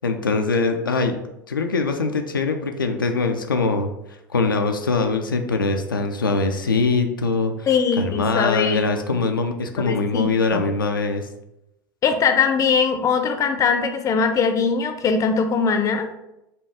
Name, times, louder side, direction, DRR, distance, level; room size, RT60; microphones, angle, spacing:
voice 1, 0.0-1.2 1.5-3.9 4.3-7.7 7.9-11.3, left 3 dB, 85° left, 4 dB, 0.4 m, -22 dB
voice 2, 7.7-8.8 9.1-9.2 9.8-10.7 12.0-16.1, left 5 dB, 30° left, 6 dB, 0.5 m, -21 dB
5.3 x 2.3 x 3.4 m, 0.86 s
figure-of-eight pair, 75°, 11 cm